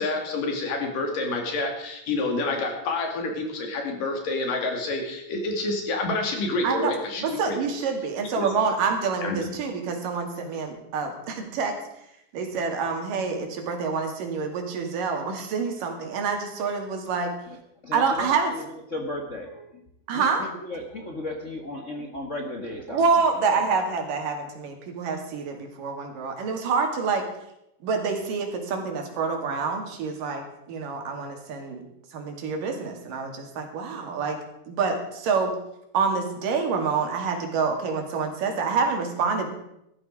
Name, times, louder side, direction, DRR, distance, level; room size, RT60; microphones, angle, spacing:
voice 1, 0.0-7.6 8.4-8.5 9.2-9.5, left 2 dB, 85° left, 3 dB, 4.3 m, -28 dB
voice 2, 7.2-11.8 12.3-17.3 17.9-18.5 20.1-20.5 22.9-27.3 27.8-31.8 32.1-34.4 34.7-35.6 35.9-39.5, right 5 dB, 80° right, 4 dB, 3.9 m, -27 dB
voice 3, 17.8-18.6 18.9-19.7 20.1-20.2 20.7-23.0 23.7-23.8, left 1 dB, 45° left, 1 dB, 1.0 m, -34 dB
16.5 x 13.0 x 5.0 m, 0.82 s
omnidirectional pair, 3.8 m